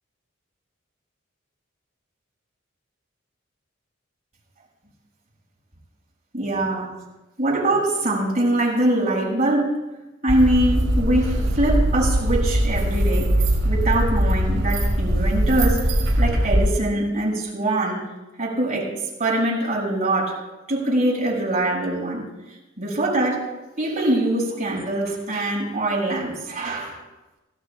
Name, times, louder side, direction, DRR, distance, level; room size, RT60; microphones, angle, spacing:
voice 1, 6.3-6.9 7.4-9.8 10.2-13.3 13.6-18.0 18.4-18.9 19.2-20.4 20.7-22.2 22.8-23.5 23.8-27.0, right 1 dB, 35° right, -5 dB, 6.6 m, -23 dB
sound 1, 10.3-16.7, equal, 70° right, 5.8 m, -21 dB
25.0 x 16.0 x 2.4 m, 1.0 s
head